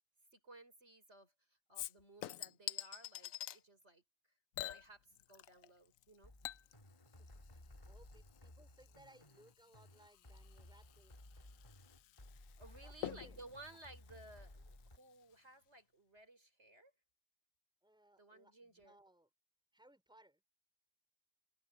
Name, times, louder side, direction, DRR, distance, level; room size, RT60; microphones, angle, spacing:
voice 1, 0.3-4.0 4.6-6.3 12.6-16.9 18.2-19.0, right 2 dB, 55° right, 6.1 m, -58 dB
Chink clink / Liquid, 1.7-3.6 4.5-5.7 6.0-15.0 15.3-15.4, left 13 dB, 85° left, 1.0 m, -50 dB
sound 1, 6.2-15.0, left 1 dB, 25° left, 2.5 m, -58 dB
voice 2, 7.0-11.7 12.3-12.4 12.6-13.4 17.8-19.3 19.7-20.4, right 1 dB, 5° right, 4.9 m, -67 dB
omnidirectional pair, 1.4 m